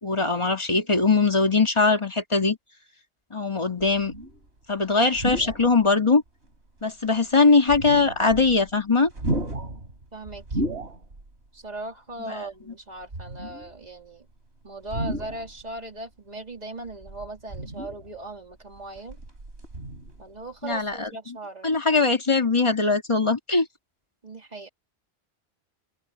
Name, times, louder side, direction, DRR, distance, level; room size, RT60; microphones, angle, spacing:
voice 1, 0.0-2.6 3.3-4.1 4.7-6.2 6.8-9.1 12.3-12.4 20.6-21.1 21.6-23.7, left 4 dB, 25° left, 2.2 m, -21 dB
sound 1, 3.8-4.4 5.1-5.8 6.4-6.5 7.6-8.8 9.1-11.3 11.6-11.8 13.0-13.8 14.8-15.8 16.9-18.2 18.7-20.4 20.7-20.9, right 1 dB, 85° right, 4.1 m, -33 dB
voice 2, 10.1-10.6 11.5-14.3 14.6-19.2 20.2-21.8 24.2-24.7, right 2 dB, 40° right, 3.3 m, -38 dB
open air
omnidirectional pair, 1.1 m